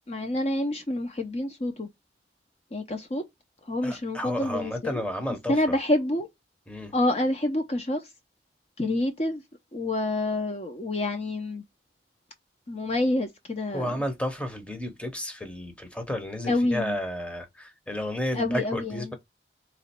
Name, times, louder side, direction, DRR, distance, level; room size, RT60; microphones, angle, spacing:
voice 1, 0.1-1.9 2.7-3.2 3.7-4.9 5.5-6.3 6.9-8.0 8.8-9.4 9.7-11.6 12.7-13.9 16.5-17.0 18.3-19.0, left 1 dB, 35° left, 0.6 m, -27 dB
voice 2, 3.8-5.8 6.7-6.9 13.7-19.1, left 1 dB, 5° left, 0.8 m, -32 dB
3.7 x 3.1 x 4.3 m
head